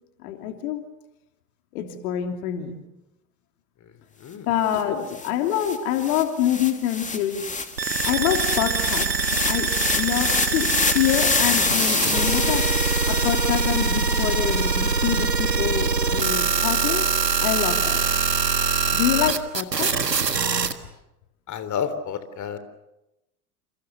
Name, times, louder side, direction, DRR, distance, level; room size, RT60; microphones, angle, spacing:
voice 1, 0.2-0.8 1.7-2.8 4.5-7.5 8.0-9.7 10.0-12.6 13.1-17.0 17.4-18.0 18.9-19.9, left 10 dB, 65° left, 5 dB, 3.1 m, -26 dB
sound 1, 4.8-4.9 5.1-15.5, left 4 dB, 15° left, 3.0 m, -27 dB
sound 2, 7.8-20.7, right 5 dB, 90° right, 1.8 m, -23 dB
voice 2, 21.5-22.6, left 7 dB, 35° left, 12 dB, 3.6 m, -30 dB
29.5 x 29.5 x 6.9 m, 0.93 s
figure-of-eight pair, 75°, 48 cm